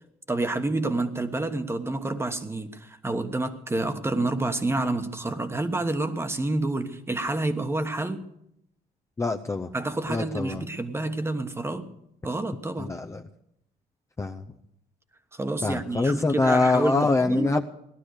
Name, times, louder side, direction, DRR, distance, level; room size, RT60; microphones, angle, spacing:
voice 1, 0.3-8.2 9.7-11.9 12.2-12.9 15.3-17.6, right 2 dB, 15° right, 1.2 m, -28 dB
voice 2, 9.2-9.7 10.1-10.7 12.8-13.2 14.2-14.4 15.6-17.7, left 3 dB, 15° left, 0.7 m, -24 dB
18.0 x 12.0 x 6.5 m
cardioid pair, 120°, 17 cm